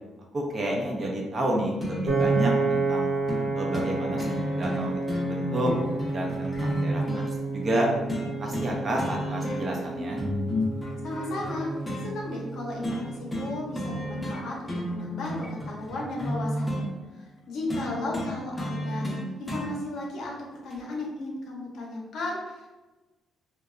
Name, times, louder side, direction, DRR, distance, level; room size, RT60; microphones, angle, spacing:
voice 1, 0.3-3.1 3.5-5.7 6.1-7.0 7.5-7.9 8.4-10.2, right 1 dB, 40° right, -1 dB, 0.6 m, -30 dB
sound 1, 1.8-2.4 3.3-3.5 3.7-3.9 4.2-7.3 8.1-8.7 9.0-9.8 10.2-12.0 12.8-13.0 13.3-13.5 13.8-14.4 14.7-16.9 17.7-19.7 20.7-20.8, left 1 dB, 15° left, 0.6 m, -31 dB
Piano, 2.1-14.3, right 3 dB, 80° right, 0.7 m, -31 dB
voice 2, 11.0-11.7 12.0-16.9 17.2-20.3 20.6-22.7, left 2 dB, 70° left, -2 dB, 0.7 m, -35 dB
2.8 x 2.2 x 2.4 m, 1.2 s
cardioid pair, 90°, 0 cm